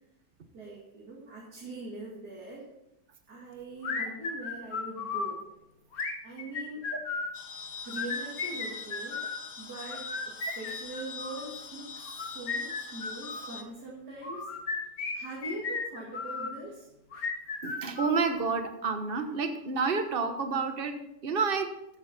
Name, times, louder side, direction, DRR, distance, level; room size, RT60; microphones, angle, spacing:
voice 1, 0.5-2.7 3.3-5.4 6.2-6.8 7.9-9.2 9.6-14.5 15.1-16.9, right 2 dB, 65° right, -4 dB, 2.8 m, -42 dB
sound 1, 3.8-5.3 5.9-7.4 7.8-9.4 9.9-11.5 12.1-13.5 14.2-16.5 17.1-18.6, left 4 dB, 55° left, 1.8 m, -35 dB
sound 2, 7.3-13.6, left 5 dB, 40° left, 1.0 m, -43 dB
voice 2, 17.6-21.7, right 4 dB, 35° right, 7 dB, 1.2 m, -29 dB
14.5 x 8.9 x 4.2 m, 0.87 s
omnidirectional pair, 1.9 m